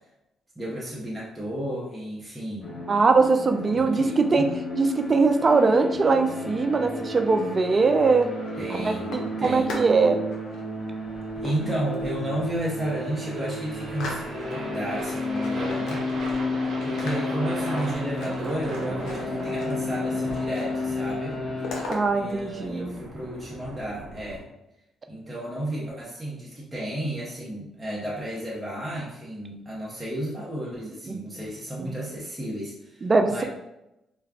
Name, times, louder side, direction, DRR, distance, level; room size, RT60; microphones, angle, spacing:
voice 1, 0.6-2.8 3.7-4.5 8.5-9.8 11.3-16.1 16.8-21.4 22.1-24.5 25.1-33.4, right 1 dB, 10° right, -7 dB, 0.7 m, -33 dB
sound 1, 2.6-21.8, left 2 dB, 35° left, 1.0 m, -32 dB
voice 2, 2.9-4.4 4.7-8.3 8.7-10.2 21.9-23.0 31.1-31.3 31.8-31.9 33.0-33.4, right 4 dB, 35° right, 5 dB, 0.3 m, -22 dB
sound 2, 8.0-10.0 10.3-10.6 11.4-12.3 12.7-12.8 13.1-14.7 15.1-16.6 16.8-20.0 20.3-20.9 21.1-22.0, left 2 dB, 75° left, 0.6 m, -39 dB
sound 3, 11.1-24.4, right 2 dB, 60° right, 0.8 m, -38 dB
2.3 x 2.2 x 3.5 m, 0.88 s
cardioid pair, 90°, 0 cm